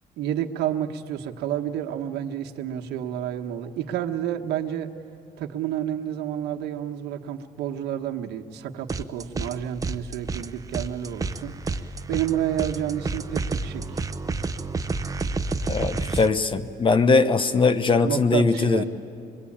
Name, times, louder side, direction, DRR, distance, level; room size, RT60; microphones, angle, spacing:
voice 1, 0.2-4.9 5.4-14.0 18.0-18.8, right 10 dB, 80° right, 4 dB, 1.3 m, -30 dB
sound 1, 8.9-9.5 9.8-16.3, right 3 dB, 20° right, 0.7 m, -30 dB
voice 2, 15.7-18.8, left 4 dB, 30° left, 12 dB, 1.0 m, -21 dB
25.5 x 22.0 x 8.7 m, 2.5 s
cardioid pair, 110°, 17 cm